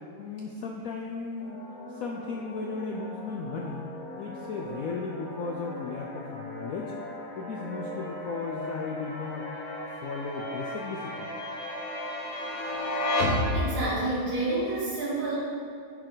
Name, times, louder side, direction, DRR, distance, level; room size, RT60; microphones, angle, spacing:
voice 1, 0.2-1.6 1.9-3.9 4.1-6.9 7.3-11.3, left 4 dB, 80° left, 0 dB, 0.8 m, -36 dB
sound 1, 1.4-14.0, left 1 dB, 50° left, 1.4 m, -34 dB
voice 2, 13.5-15.4, right 2 dB, 80° right, -7 dB, 2.7 m, -29 dB
9.9 x 4.5 x 3.9 m, 2.4 s
omnidirectional pair, 2.1 m